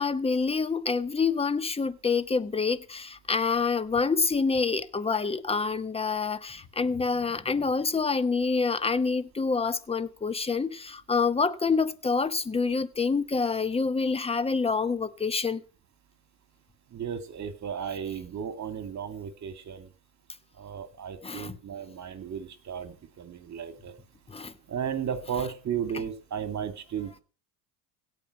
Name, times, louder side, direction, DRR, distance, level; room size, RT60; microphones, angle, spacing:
voice 1, 0.0-15.6 21.2-21.6 24.3-24.5, left 4 dB, 15° left, 1.0 m, -27 dB
voice 2, 16.9-19.9 20.6-23.9 24.7-27.2, right 8 dB, 35° right, 2.3 m, -34 dB
17.0 x 5.7 x 9.8 m
supercardioid pair, 110°, 45 cm